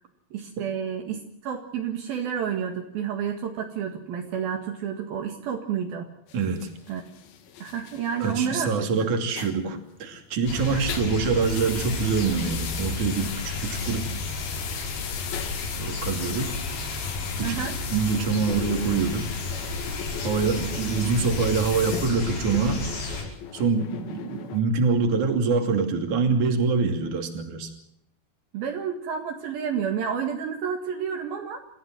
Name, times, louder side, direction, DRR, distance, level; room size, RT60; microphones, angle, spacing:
voice 1, 0.3-6.1 6.9-7.0 7.6-8.9 10.7-10.8 17.4-17.8 28.5-31.6, right 7 dB, 70° right, 3 dB, 3.6 m, -30 dB
sound 1, 6.3-10.5 10.8-24.6, left 9 dB, 70° left, 3.5 m, -38 dB
voice 2, 6.3-6.7 8.2-14.1 15.8-16.6 17.4-19.3 20.2-22.9 23.5-27.7, right 5 dB, 55° right, 5 dB, 3.9 m, -25 dB
sound 2, 10.5-23.2, left 3 dB, 90° left, 7.7 m, -32 dB
28.5 x 15.0 x 7.7 m, 0.75 s
omnidirectional pair, 4.5 m